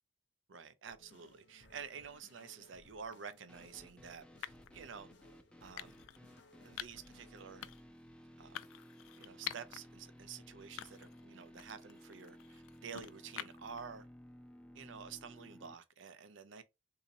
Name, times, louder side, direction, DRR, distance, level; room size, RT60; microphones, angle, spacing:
voice 1, 0.5-5.1 5.6-5.9 6.6-7.7 8.4-8.6 9.2-14.1 14.7-16.6, right 6 dB, 70° right, 0.5 m, -50 dB
sound 1, 0.9-7.7, left 2 dB, 60° left, 0.6 m, -64 dB
sound 2, 3.1-3.4 4.4-4.8 5.8-6.2 6.8-7.1 7.6-8.0 8.6-9.8 10.2-10.3 10.8-11.2 11.6-13.8, left 12 dB, 90° left, 0.3 m, -47 dB
sound 3, 3.5-15.7, equal, 5° left, 0.5 m, -57 dB
3.9 x 2.8 x 2.6 m
head